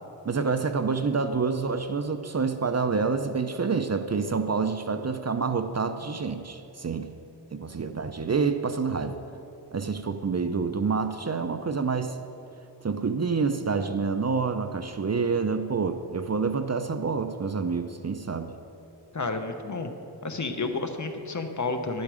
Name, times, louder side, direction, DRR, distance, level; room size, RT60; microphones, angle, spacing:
voice 1, 0.2-7.1 7.5-9.2 9.7-12.2 12.8-18.5, right 5 dB, 40° right, 9 dB, 0.6 m, -27 dB
voice 2, 19.1-19.9 20.2-22.0, left 3 dB, 40° left, 6 dB, 1.1 m, -31 dB
11.5 x 11.0 x 4.9 m, 2.9 s
wide cardioid pair, 70°, 42 cm